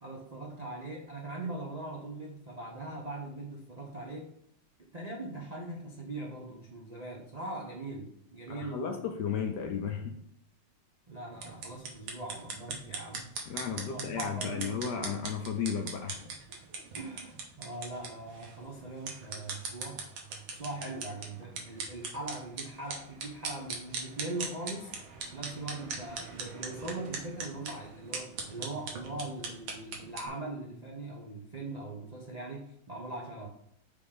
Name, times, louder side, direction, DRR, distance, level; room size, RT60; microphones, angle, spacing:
voice 1, 0.0-4.3 4.9-9.0 11.1-14.8 16.9-20.0 20.5-24.9 25.3-33.5, right 2 dB, 50° right, -2 dB, 0.4 m, -41 dB
voice 2, 8.5-10.2 13.5-16.2, left 7 dB, 70° left, 5 dB, 1.1 m, -34 dB
sound 1, 11.3-30.3, right 4 dB, 80° right, 1.8 m, -41 dB
5.3 x 3.6 x 5.0 m, 0.70 s
omnidirectional pair, 2.3 m